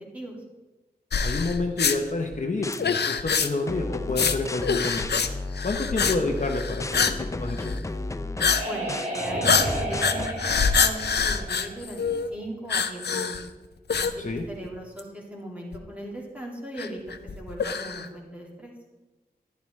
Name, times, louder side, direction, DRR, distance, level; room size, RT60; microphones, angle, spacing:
sound 1, 1.1-2.0 2.7-3.7 4.1-4.4 4.6-5.3 5.6-6.2 6.4-7.2 7.5-7.8 8.4-8.6 8.9-9.1 9.4-12.3 12.7-13.5 13.9-14.7 15.0-15.1 15.7-15.8 16.8-18.1, left 6 dB, 80° left, 0.5 m, -25 dB
voice 1, 1.2-5.2 5.6-7.8 14.2-14.4, left 3 dB, 45° left, 3 dB, 0.8 m, -29 dB
sound 2, 2.3-2.8 3.7-10.3, left 2 dB, 20° left, 0.3 m, -34 dB
sound 3, 7.8-12.4, right 1 dB, 40° right, 2.2 m, -32 dB
voice 2, 8.6-10.3 10.8-13.4 14.0-14.1 14.5-18.7, right 1 dB, 10° right, -2 dB, 2.3 m, -38 dB
10.5 x 10.5 x 3.2 m, 1.2 s
wide cardioid pair, 95°, 17 cm